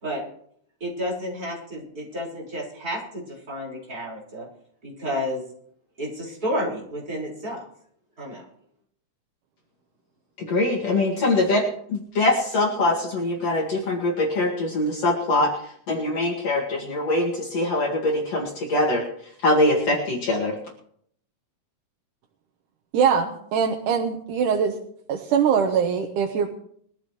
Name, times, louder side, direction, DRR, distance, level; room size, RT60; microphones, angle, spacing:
voice 1, 0.8-4.4 4.8-5.4 6.0-7.6 8.2-8.4, equal, 25° right, -4 dB, 5.1 m, -31 dB
voice 2, 10.5-11.6 11.9-15.5 15.9-19.0 19.4-20.5, left 2 dB, 55° left, -2 dB, 3.1 m, -23 dB
voice 3, 22.9-24.8 25.1-26.5, right 7 dB, 85° right, 3 dB, 2.5 m, -22 dB
22.0 x 13.5 x 3.1 m, 0.64 s
omnidirectional pair, 3.6 m